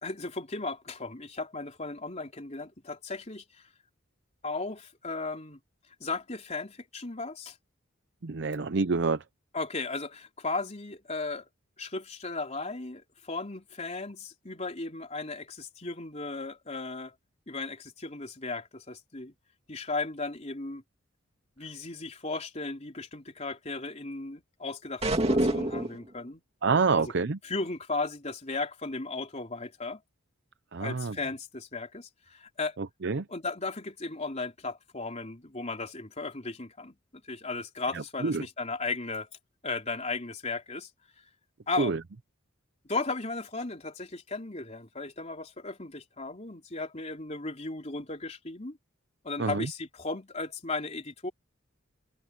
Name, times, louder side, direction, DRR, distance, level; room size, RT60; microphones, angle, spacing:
voice 1, 0.0-3.4 4.4-5.6 6.0-7.6 9.5-11.4 11.8-17.1 17.5-19.3 19.7-20.8 21.6-26.4 27.0-27.1 27.4-30.0 30.8-32.8 33.3-39.3 39.6-40.9 41.7-41.9 42.9-48.8 49.2-51.3, left 3 dB, 35° left, 3.7 m, -36 dB
voice 2, 8.2-9.2 26.6-27.4 30.7-31.1 33.0-33.2 38.2-38.4 41.8-42.0 49.4-49.7, right 4 dB, 60° right, 0.6 m, -27 dB
sound 1, 25.0-26.1, right 1 dB, 30° right, 2.6 m, -26 dB
head